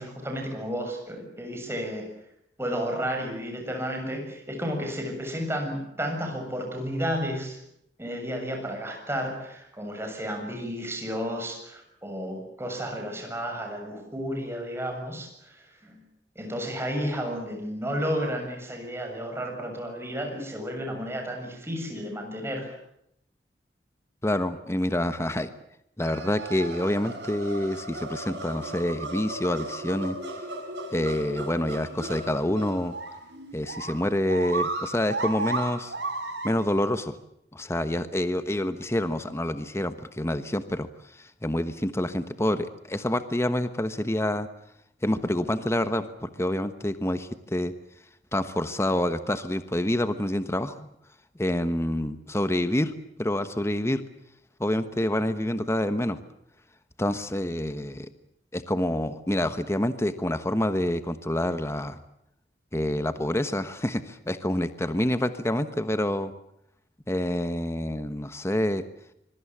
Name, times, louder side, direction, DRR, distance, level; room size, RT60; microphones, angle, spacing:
voice 1, 0.0-2.1 2.6-7.6 8.0-16.0 16.4-22.7, equal, 15° right, 3 dB, 7.0 m, -32 dB
voice 2, 24.2-25.5 26.0-30.2 30.9-32.9 33.5-35.9 36.4-37.1 37.5-40.9 41.2-44.5 45.0-47.7 48.3-50.9 51.4-52.9 53.2-54.0 54.6-56.2 57.0-58.1 58.5-62.0 62.7-66.3 67.1-68.8, left 1 dB, 15° left, 11 dB, 1.2 m, -27 dB
sound 1, 26.0-36.8, right 2 dB, 90° right, 5.8 m, -35 dB
25.5 x 22.0 x 7.4 m, 0.76 s
head